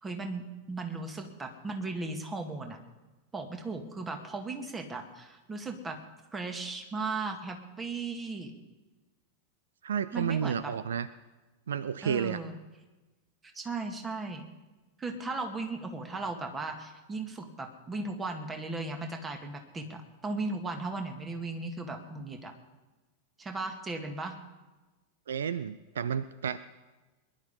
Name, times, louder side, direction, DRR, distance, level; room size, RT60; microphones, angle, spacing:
voice 1, 0.0-2.8 3.3-6.0 6.3-8.5 10.1-10.7 12.0-12.5 13.5-14.4 15.0-22.5 23.4-24.4, right 3 dB, 15° right, 5 dB, 2.1 m, -36 dB
voice 2, 9.8-11.1 11.7-12.4 25.3-26.6, right 8 dB, 65° right, 15 dB, 0.5 m, -31 dB
22.0 x 11.5 x 5.4 m, 1.2 s
figure-of-eight pair, 90°, 0 cm